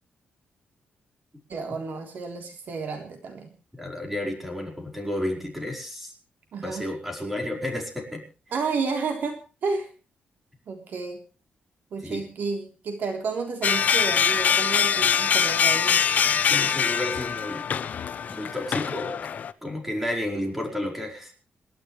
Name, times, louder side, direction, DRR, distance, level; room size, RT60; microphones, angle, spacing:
voice 1, 1.5-3.5 6.5-6.9 8.5-9.9 10.7-11.2 11.9-16.0, right 4 dB, 65° right, 4 dB, 3.6 m, -31 dB
voice 2, 3.7-6.1 6.6-8.2 12.0-12.2 16.5-17.7 18.3-19.2 19.6-21.3, left 1 dB, 5° right, 1 dB, 5.0 m, -31 dB
sound 1, 13.6-19.5, left 7 dB, 50° left, 0.8 m, -23 dB
27.5 x 12.0 x 3.3 m, 0.33 s
wide cardioid pair, 145°, 3 cm